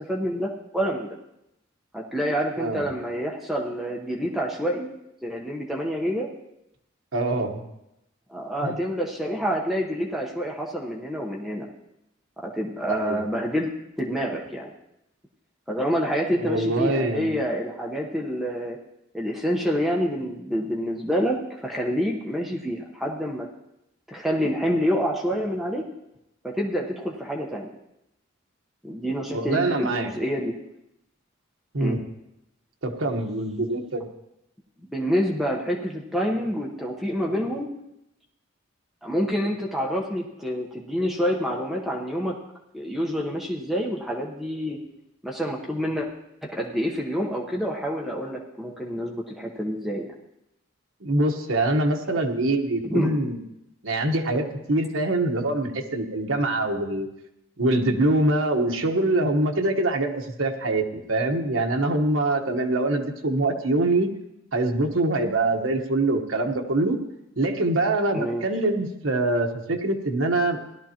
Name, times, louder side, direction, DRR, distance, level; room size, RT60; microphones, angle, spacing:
voice 1, 0.1-1.1 1.9-4.9 5.2-6.3 8.3-11.7 12.4-13.7 14.0-14.7 15.7-18.8 19.1-23.5 24.1-25.8 26.4-27.7 28.8-30.5 31.8-32.0 34.8-37.7 39.0-42.3 42.7-44.8 45.2-46.1 46.4-50.1 52.8-53.2 68.1-68.4, equal, ahead, -1 dB, 1.0 m, -27 dB
voice 2, 7.1-7.6 8.6-8.8 12.9-13.2 16.4-17.3 29.3-30.1 31.7-32.0 32.8-34.0 51.0-53.4 53.8-57.1 57.6-64.1 64.5-67.0 67.4-70.6, right 2 dB, 75° right, 3 dB, 1.2 m, -24 dB
17.5 x 11.5 x 2.9 m, 0.86 s
head